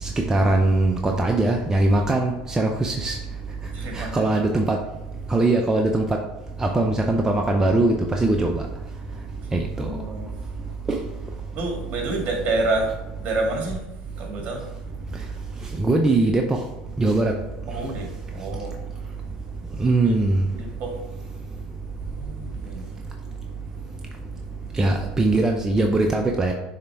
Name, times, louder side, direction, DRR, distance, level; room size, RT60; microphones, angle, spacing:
voice 1, 0.0-3.2 3.9-4.8 5.3-6.2 6.6-8.6 9.5-9.9 10.9-11.0 15.8-16.6 17.0-17.3 19.8-20.4 24.7-26.5, right 2 dB, 15° right, 2 dB, 0.6 m, -21 dB
voice 2, 3.7-4.3 9.8-10.3 11.5-12.9 13.2-13.8 14.2-14.6 17.7-18.7 20.0-20.2 20.5-21.0 22.1-22.9, right 2 dB, 50° right, 1 dB, 1.8 m, -28 dB
6.7 x 3.3 x 4.5 m, 1.0 s
supercardioid pair, 90°, 4 cm